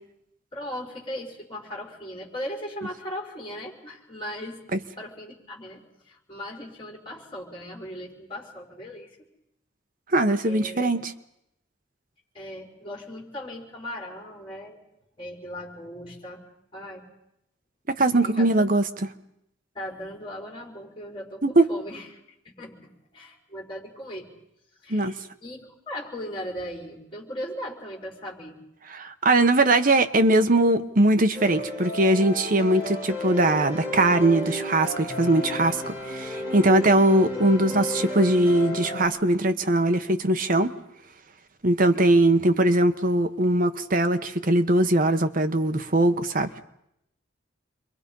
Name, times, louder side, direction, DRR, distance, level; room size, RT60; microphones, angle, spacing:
voice 1, 0.5-4.6 5.0-9.2 10.4-10.9 12.3-14.8 15.2-16.4 16.7-17.1 18.2-18.5 19.7-22.1 22.6-24.3 24.8-25.6 25.9-28.6, equal, 25° left, -1 dB, 5.1 m, -38 dB
voice 2, 10.1-11.1 17.9-18.8 21.4-21.7 24.9-25.1 28.9-40.7 41.6-46.5, right 1 dB, 45° right, 8 dB, 1.1 m, -21 dB
sound 1, 31.3-39.1, left 1 dB, 15° right, 7.1 m, -33 dB
28.5 x 23.0 x 5.5 m, 0.81 s
head